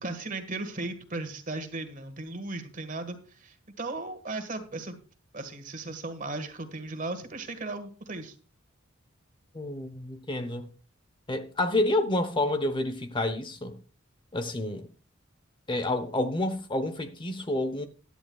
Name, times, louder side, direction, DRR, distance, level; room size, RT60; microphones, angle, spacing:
voice 1, 0.0-5.0 5.3-8.3, right 2 dB, 40° right, 1.7 m, -36 dB
voice 2, 9.5-10.7 11.3-13.8 14.3-14.9 15.7-17.9, left 1 dB, 25° left, 0.8 m, -29 dB
16.0 x 11.0 x 2.3 m
head